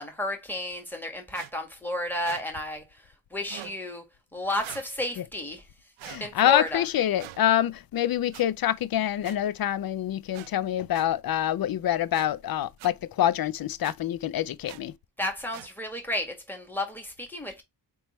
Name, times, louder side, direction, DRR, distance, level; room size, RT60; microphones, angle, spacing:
voice 1, 0.0-4.0 4.3-5.7 6.2-6.9 15.2-17.6, left 1 dB, 5° left, 1.6 m, -32 dB
sound 1, 1.3-1.5 2.2-2.4 3.5-3.8 4.6-4.9 6.0-6.2 7.2-7.4 8.3-8.4 9.2-9.4 10.3-10.5 10.9-11.1 12.1-12.3 12.8-12.9 13.8-13.9 14.7-14.8 15.5-15.7, right 14 dB, 85° right, 0.5 m, -43 dB
voice 2, 6.0-14.9, left 11 dB, 50° left, 0.5 m, -26 dB
3.6 x 3.0 x 4.1 m
cardioid pair, 80°, 46 cm